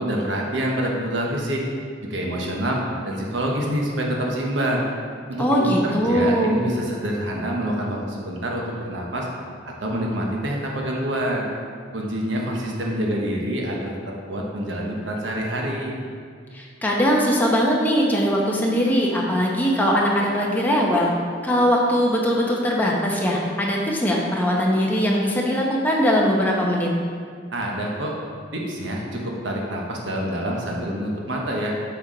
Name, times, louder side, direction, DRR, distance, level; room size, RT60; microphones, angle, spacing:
voice 1, 0.0-1.6 2.0-4.8 5.3-9.3 9.8-11.5 11.9-13.9 14.3-16.0 27.5-28.1 28.5-31.7, right 1 dB, 80° right, -2 dB, 1.1 m, -26 dB
voice 2, 5.4-6.6 16.5-21.1 21.4-26.9, equal, 10° left, -3 dB, 0.8 m, -21 dB
7.4 x 4.7 x 3.8 m, 2.1 s
head